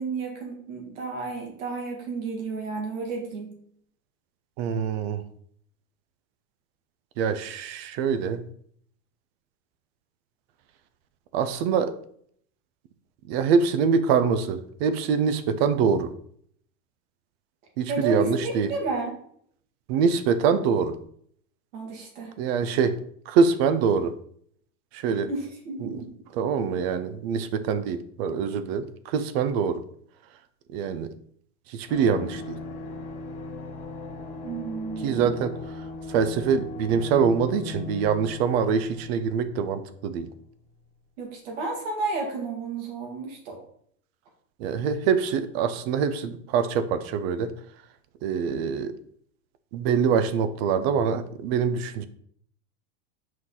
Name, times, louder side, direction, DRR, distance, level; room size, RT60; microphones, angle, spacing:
voice 1, 0.0-3.5 17.9-19.2 21.7-22.3 25.3-26.1 34.4-35.4 41.2-43.6, right 4 dB, 70° right, 1 dB, 2.4 m, -32 dB
voice 2, 4.6-5.2 7.2-8.4 11.3-11.9 13.3-16.1 17.8-18.7 19.9-21.0 22.4-23.0 23.3-24.1 24.9-25.3 25.8-26.0 26.4-29.8 30.7-31.1 31.7-32.6 35.0-35.5 36.1-40.3 44.6-47.5 48.2-48.9 49.7-52.1, right 6 dB, 50° right, 12 dB, 0.7 m, -24 dB
sound 1, 31.9-40.4 40.6-40.8, left 3 dB, 40° left, 2.1 m, -38 dB
6.0 x 4.7 x 3.9 m, 0.65 s
supercardioid pair, 145°, 39 cm